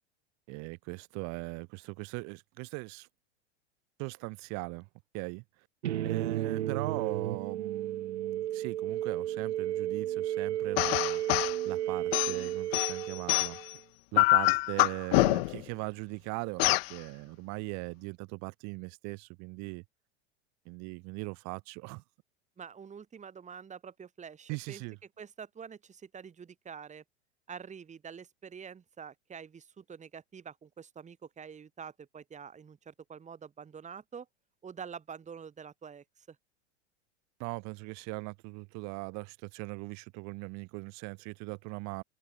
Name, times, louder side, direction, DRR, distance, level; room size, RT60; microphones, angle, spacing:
voice 1, 0.5-3.1 4.0-4.9 5.1-5.4 6.0-11.2 11.6-13.6 14.1-19.8 20.6-22.0 24.5-25.0 37.4-42.0, right 30 dB, 55° right, 3.4 m, -39 dB
sound 1, 5.8-13.7, right 12 dB, 75° right, 2.6 m, -33 dB
sound 2, 10.8-11.6 12.1-13.7 14.2-15.6 16.6-16.9, left 23 dB, 60° left, 0.5 m, -25 dB
voice 2, 22.6-24.8 25.2-27.0 27.5-34.3 34.6-36.4, right 7 dB, 20° right, 2.7 m, -46 dB
hypercardioid pair, 95°, 34 cm